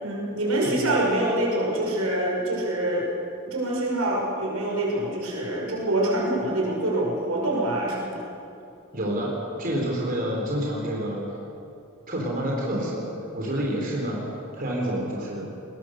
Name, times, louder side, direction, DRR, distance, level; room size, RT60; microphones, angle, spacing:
voice 1, 0.0-3.1 3.5-8.3, right 1 dB, 85° right, -2 dB, 5.7 m, -25 dB
voice 2, 8.9-9.3 9.6-11.2 12.1-14.2 14.5-15.5, equal, 40° right, -3 dB, 4.3 m, -28 dB
21.0 x 20.0 x 6.7 m, 2.7 s
head